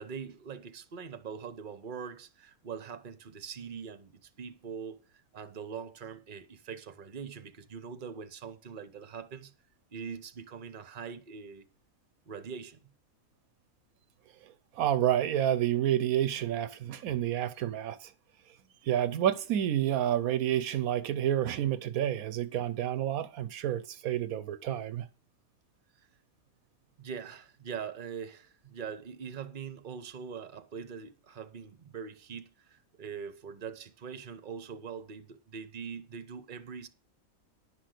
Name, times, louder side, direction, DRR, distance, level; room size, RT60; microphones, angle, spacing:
voice 1, 0.0-5.0 5.3-9.5 9.9-11.6 12.3-12.8 27.0-36.9, right 6 dB, 40° right, 1.0 m, -42 dB
voice 2, 14.8-18.1 18.8-25.1, right 11 dB, 80° right, 1.1 m, -29 dB
10.5 x 6.0 x 6.5 m
omnidirectional pair, 1.5 m